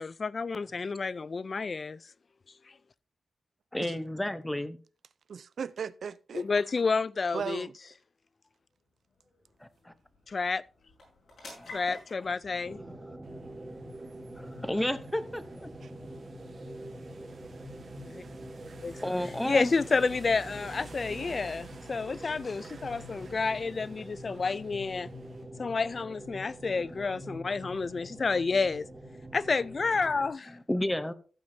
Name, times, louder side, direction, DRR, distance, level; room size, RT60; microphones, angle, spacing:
voice 1, 0.0-2.0 6.3-7.7 10.3-10.6 11.7-12.8 18.0-18.2 18.8-19.0 19.4-25.1 25.6-28.9 29.3-30.5, left 4 dB, 40° left, 0.3 m, -30 dB
voice 2, 3.7-4.8 9.6-9.9 11.6-11.7 12.2-13.2 14.4-15.7 19.0-19.7 26.7-27.0 30.5-31.1, left 1 dB, 10° left, 0.7 m, -33 dB
voice 3, 5.3-6.5 7.3-7.8 15.8-15.9 21.0-21.4, right 6 dB, 70° right, 0.4 m, -38 dB
Pots b out sir, 8.0-22.8, left 2 dB, 80° left, 6.6 m, -55 dB
sound 1, 12.6-30.3, equal, 20° right, 1.8 m, -45 dB
sound 2, 13.2-25.4, right 4 dB, 50° right, 1.6 m, -52 dB
15.0 x 8.3 x 2.7 m
wide cardioid pair, 155°, 0 cm